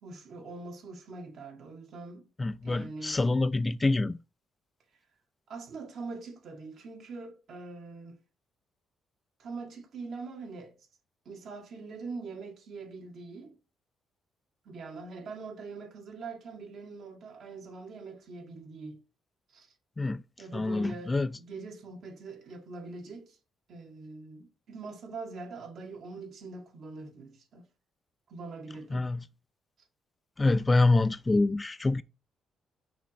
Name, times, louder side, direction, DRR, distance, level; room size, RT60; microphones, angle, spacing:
voice 1, 0.0-2.3 2.6-3.2 5.5-8.2 9.4-10.8 11.3-13.6 14.7-19.0 19.5-19.7 20.4-23.4 23.7-27.7 28.3-29.2, right 3 dB, 65° right, 1.9 m, -43 dB
voice 2, 2.4-4.2 20.0-20.2 20.5-21.3 28.9-29.2 30.4-32.0, left 2 dB, 20° left, 0.3 m, -26 dB
6.2 x 3.1 x 5.6 m
cardioid pair, 90°, 0 cm